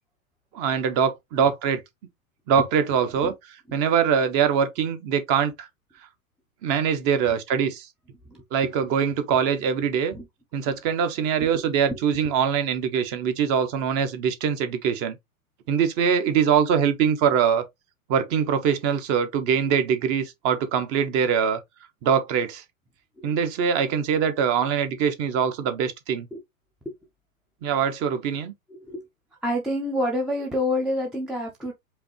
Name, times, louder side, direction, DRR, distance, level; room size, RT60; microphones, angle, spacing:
voice 1, 0.5-1.8 2.5-3.3 3.7-5.7 6.6-7.9 8.5-10.2 10.5-15.2 15.7-17.6 18.1-21.6 22.0-22.6 23.2-26.3 27.6-28.5, right 7 dB, 35° right, 0.8 m, -23 dB
voice 2, 8.3-8.7 10.1-10.3 11.4-11.6 11.9-12.0 23.2-23.3 26.3-26.4 26.9-27.0 28.7-29.1 29.4-31.7, left 1 dB, ahead, 0.4 m, -28 dB
5.0 x 2.7 x 2.9 m
hypercardioid pair, 115°, 44 cm